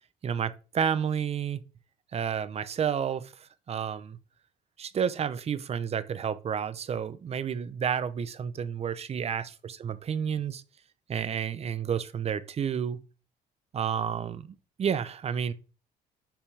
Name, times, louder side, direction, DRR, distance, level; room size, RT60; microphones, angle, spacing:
voice 1, 0.2-1.6 2.1-4.2 4.8-10.6 11.1-13.0 13.7-15.5, right 7 dB, 40° right, 0.7 m, -30 dB
8.5 x 5.8 x 3.4 m
cardioid pair, 110°, 17 cm